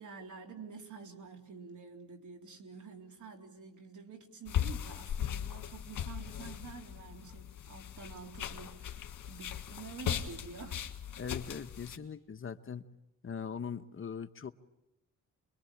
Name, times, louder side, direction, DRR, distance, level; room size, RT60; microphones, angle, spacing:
voice 1, 0.0-10.9, right 5 dB, 65° right, 3 dB, 3.8 m, -49 dB
sound 1, 4.5-12.0, left 9 dB, 75° left, 1.7 m, -38 dB
voice 2, 11.2-12.8 13.2-14.5, left 6 dB, 40° left, 10 dB, 1.0 m, -41 dB
27.5 x 22.0 x 8.7 m, 0.91 s
cardioid pair, 100°, 32 cm